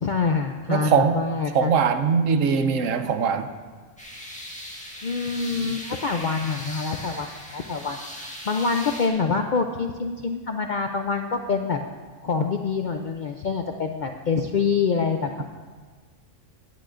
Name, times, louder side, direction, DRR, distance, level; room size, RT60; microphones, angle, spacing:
voice 1, 0.0-1.8 5.0-11.8 12.2-15.4, left 5 dB, 60° left, 4 dB, 0.5 m, -26 dB
voice 2, 0.7-1.2 1.5-3.5, right 6 dB, 75° right, 9 dB, 1.0 m, -21 dB
sound 1, 4.0-9.1, equal, 5° left, 1.4 m, -39 dB
16.5 x 11.0 x 2.5 m, 1.5 s
omnidirectional pair, 1.4 m